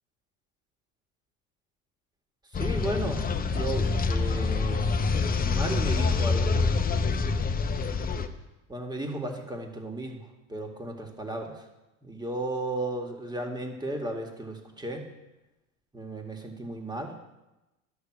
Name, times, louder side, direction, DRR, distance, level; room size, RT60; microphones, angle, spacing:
sound 1, 2.5-8.3, left 4 dB, 20° left, 0.8 m, -26 dB
voice 1, 2.5-4.9 5.4-6.8 8.7-10.2 10.5-11.5 12.1-15.0 15.9-17.1, right 1 dB, 10° right, 2 dB, 2.1 m, -34 dB
12.5 x 6.4 x 6.2 m, 1.0 s
hypercardioid pair, 85°, 40 cm